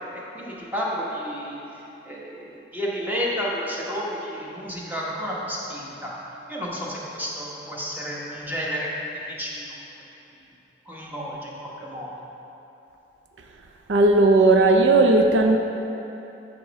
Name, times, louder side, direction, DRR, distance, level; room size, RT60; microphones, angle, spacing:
voice 1, 0.3-1.6 2.0-6.1 6.5-9.7 10.9-12.1, equal, 10° right, -5 dB, 1.1 m, -31 dB
voice 2, 13.9-15.6, right 2 dB, 85° right, 4 dB, 0.5 m, -16 dB
8.5 x 3.0 x 6.3 m, 3.0 s
head